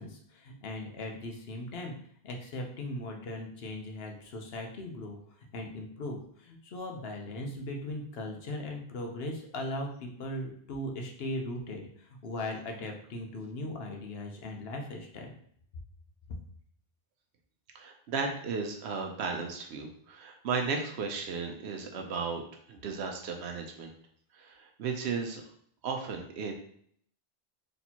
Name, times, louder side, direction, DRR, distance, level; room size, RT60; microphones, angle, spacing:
voice 1, 0.0-1.9 2.2-5.2 5.5-15.3, left 1 dB, 70° left, 2 dB, 1.0 m, -38 dB
voice 2, 17.7-22.4 22.7-23.9 24.4-25.4 25.8-26.5, right 5 dB, 85° right, 3 dB, 0.9 m, -35 dB
4.2 x 3.4 x 2.8 m, 0.64 s
omnidirectional pair, 1.1 m